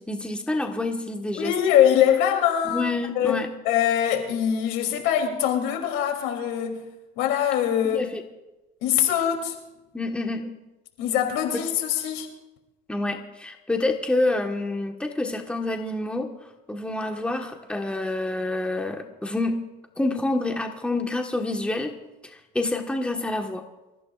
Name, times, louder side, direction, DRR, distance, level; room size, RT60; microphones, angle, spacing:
voice 1, 0.0-1.5 2.6-3.5 7.8-8.2 9.9-10.5 12.9-16.3 16.7-19.6 20.0-22.0 22.2-23.6, left 2 dB, 5° left, 1.3 m, -27 dB
voice 2, 1.4-6.8 7.2-8.1 8.8-9.5 11.0-12.3, left 10 dB, 75° left, 2.9 m, -23 dB
26.5 x 15.0 x 2.4 m
cardioid pair, 110°, 20 cm